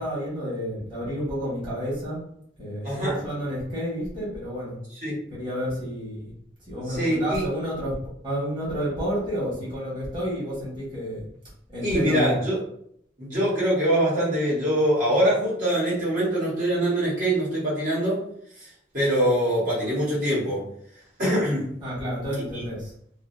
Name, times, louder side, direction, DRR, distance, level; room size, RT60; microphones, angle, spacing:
voice 1, 0.0-2.2 2.6-4.8 5.3-6.3 6.7-8.0 8.2-11.3 11.7-12.4 21.8-22.9, equal, 25° right, -10 dB, 1.4 m, -30 dB
voice 2, 2.8-3.2 5.0-5.2 6.9-7.5 11.8-12.6 13.2-18.2 18.6-18.7 18.9-20.6 21.2-21.7 22.4-22.6, right 1 dB, 50° right, -9 dB, 1.4 m, -24 dB
2.7 x 2.6 x 2.7 m, 0.70 s
head